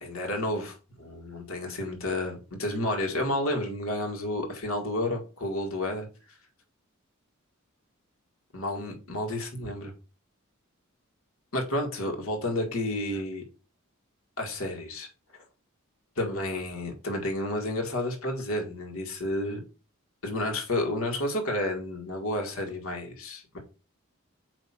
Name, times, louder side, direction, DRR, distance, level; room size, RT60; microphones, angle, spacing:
voice 1, 0.0-6.1 8.5-9.9 11.5-13.4 14.4-15.4 16.2-19.6 20.2-23.6, left 1 dB, 70° left, 1.8 m, -31 dB
8.1 x 2.8 x 4.3 m
head